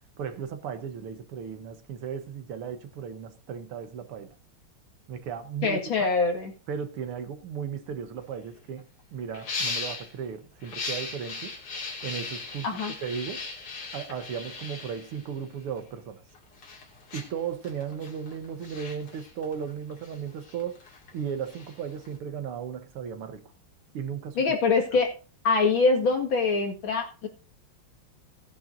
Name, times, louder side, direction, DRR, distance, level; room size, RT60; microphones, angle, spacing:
voice 1, 0.2-4.3 5.1-5.8 6.7-11.6 12.0-13.4 13.9-16.2 17.1-20.8 21.1-23.4 23.9-24.4, right 7 dB, 85° right, 8 dB, 2.1 m, -36 dB
voice 2, 5.6-6.5 12.6-12.9 24.4-25.1 25.4-27.3, left 4 dB, 60° left, 1 dB, 2.7 m, -24 dB
sound 1, 8.2-8.3 8.6-8.8 9.3-10.1 10.6-15.8 16.3-22.1, left 4 dB, 80° left, 3.4 m, -38 dB
17.0 x 10.5 x 2.7 m, 0.35 s
omnidirectional pair, 2.4 m